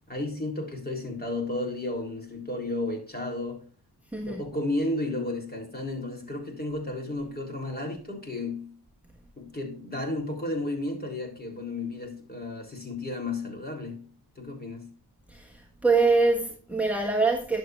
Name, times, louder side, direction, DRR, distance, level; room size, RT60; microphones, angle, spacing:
voice 1, 0.1-3.6 4.3-8.7 9.4-14.1 14.4-14.9, left 2 dB, 25° left, 3.6 m, -33 dB
voice 2, 4.1-4.4 15.3-17.6, right 3 dB, 5° right, 1.4 m, -24 dB
11.5 x 7.1 x 2.5 m
cardioid pair, 70°, 41 cm